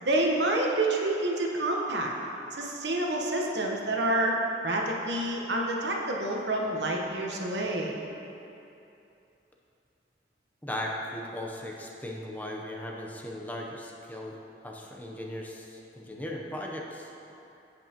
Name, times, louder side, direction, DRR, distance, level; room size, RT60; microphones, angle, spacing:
voice 1, 0.0-2.1 2.6-4.4 4.6-8.0, right 1 dB, 75° right, -1 dB, 1.0 m, -28 dB
voice 2, 10.6-14.4 14.6-17.1, left 1 dB, 10° left, -1 dB, 0.7 m, -37 dB
15.5 x 5.4 x 2.9 m, 2.8 s
head